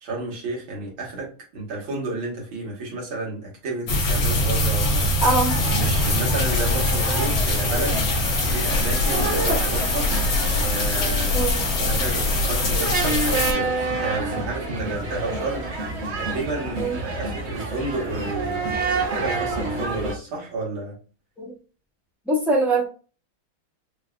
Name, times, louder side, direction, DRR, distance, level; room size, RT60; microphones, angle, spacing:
voice 1, 0.0-5.1 5.6-8.1 8.5-10.1 10.5-11.5 11.8-21.0, right 2 dB, 75° right, -2 dB, 2.3 m, -31 dB
sound 1, 3.9-13.5, left 2 dB, 60° left, 1.6 m, -23 dB
voice 2, 5.2-5.6 11.3-11.6 16.7-17.0 21.4-21.5 22.3-22.9, right 2 dB, ahead, -5 dB, 1.0 m, -22 dB
sound 2, 5.5-20.1, right 2 dB, 45° right, 0.9 m, -28 dB
5.1 x 2.7 x 2.4 m, 0.35 s
omnidirectional pair, 2.3 m